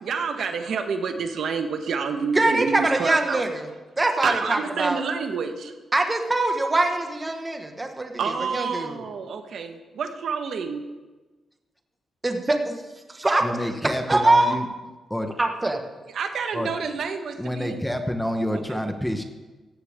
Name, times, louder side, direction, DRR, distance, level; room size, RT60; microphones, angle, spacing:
voice 1, 0.0-3.4 4.2-5.7 8.2-10.9 16.1-17.8 18.7-18.8, right 5 dB, 70° right, 6 dB, 1.4 m, -28 dB
voice 2, 2.3-3.7 4.0-5.0 5.9-9.0 12.2-12.7 13.1-13.7 14.1-14.6 15.4-15.8, right 2 dB, 20° right, 4 dB, 1.7 m, -23 dB
voice 3, 13.4-14.6 15.1-15.3 16.5-16.7 17.4-19.2, equal, 5° left, 6 dB, 1.1 m, -28 dB
17.0 x 14.5 x 3.7 m, 1.2 s
cardioid pair, 115°, 0 cm